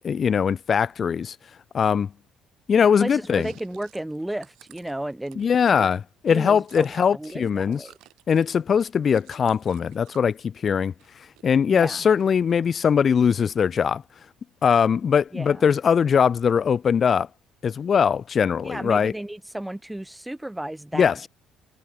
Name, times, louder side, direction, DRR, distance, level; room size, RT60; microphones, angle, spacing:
voice 1, 0.0-1.4 1.7-2.1 2.7-3.5 5.4-7.8 8.3-10.9 11.4-14.0 14.6-17.3 17.6-19.1 20.9-21.2, left 7 dB, 45° left, 0.3 m, -21 dB
voice 2, 3.0-5.9 6.3-6.8 7.1-8.0 11.7-12.1 15.3-15.7 18.6-21.3, right 1 dB, 5° right, 0.7 m, -34 dB
Chewing mastication, 3.2-7.4 7.6-10.3 10.7-11.5 11.7-12.6, right 18 dB, 80° right, 2.0 m, -54 dB
supercardioid pair, 85°, 0 cm